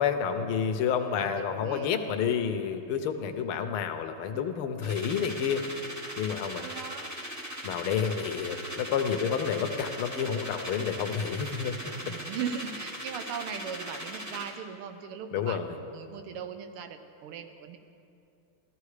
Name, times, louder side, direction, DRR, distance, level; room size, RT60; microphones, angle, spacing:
voice 1, 0.0-5.6 6.2-6.7 7.6-11.9 15.3-15.7, left 7 dB, 80° left, 7 dB, 1.7 m, -29 dB
voice 2, 1.2-2.0 6.6-7.1 12.0-17.8, right 7 dB, 85° right, 8 dB, 1.8 m, -39 dB
sound 1, 4.8-14.6, equal, 10° right, 0.8 m, -39 dB
16.0 x 13.5 x 4.9 m, 2.7 s
omnidirectional pair, 2.4 m